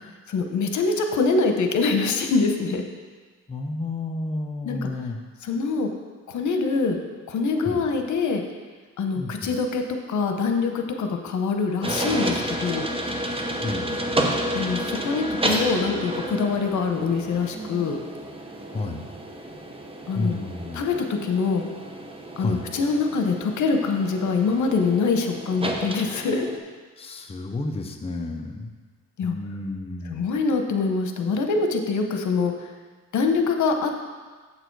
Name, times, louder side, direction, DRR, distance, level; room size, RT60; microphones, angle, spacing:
voice 1, 0.3-2.8 4.6-4.8 5.4-5.9 6.3-7.0 7.3-8.4 9.0-12.9 14.5-18.0 20.1-20.4 20.7-21.7 22.4-26.5 29.2-29.4 30.1-32.7 33.1-33.9, left 4 dB, 85° left, 5 dB, 0.9 m, -24 dB
voice 2, 3.5-5.2 7.6-7.8 9.1-9.5 13.6-14.0 18.7-19.1 20.1-20.9 22.4-22.7 27.0-28.7 29.2-30.2, left 2 dB, 20° left, 3 dB, 0.6 m, -31 dB
sound 1, 11.8-26.6, right 1 dB, 20° right, 0.8 m, -31 dB
7.8 x 6.8 x 4.7 m, 1.4 s
wide cardioid pair, 130°, 29 cm